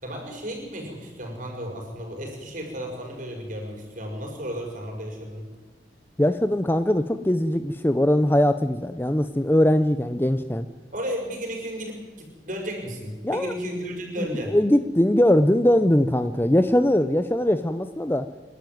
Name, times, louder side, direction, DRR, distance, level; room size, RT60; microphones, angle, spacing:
voice 1, 0.0-5.4 10.9-14.6, equal, 45° right, 2 dB, 5.8 m, -33 dB
voice 2, 6.2-10.7 13.2-13.5 14.3-18.3, left 1 dB, 10° left, 10 dB, 0.6 m, -21 dB
27.5 x 12.0 x 9.4 m, 1.3 s
head